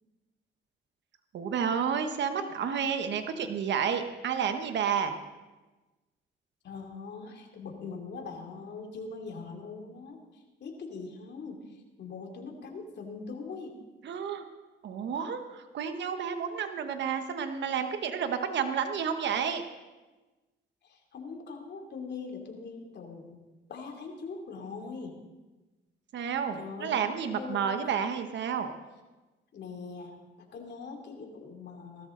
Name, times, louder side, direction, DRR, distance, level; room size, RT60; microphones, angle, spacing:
voice 1, 1.3-5.1 14.0-14.4 14.8-19.6 26.1-28.7, right 7 dB, 65° right, 8 dB, 1.1 m, -30 dB
voice 2, 6.6-13.8 20.8-23.4 23.7-25.2 26.6-27.0 27.3-27.8 29.5-30.2 30.5-32.1, left 4 dB, 60° left, 2 dB, 2.8 m, -42 dB
17.5 x 13.5 x 3.8 m, 1.2 s
cardioid pair, 90°, 20 cm